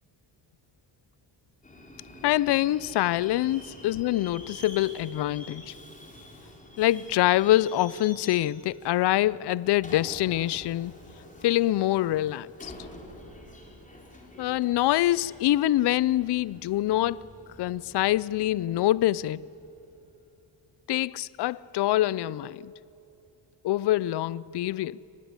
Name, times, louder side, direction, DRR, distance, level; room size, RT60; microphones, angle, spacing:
Subway metro underground, 1.6-20.1, left 1 dB, 15° left, 3.8 m, -48 dB
voice 1, 2.2-5.7 6.8-10.9 11.4-12.7 14.4-17.3 17.6-19.4 20.9-22.7 23.6-25.0, left 14 dB, 60° left, 0.5 m, -25 dB
24.0 x 19.0 x 9.7 m
cardioid pair, 120°, 46 cm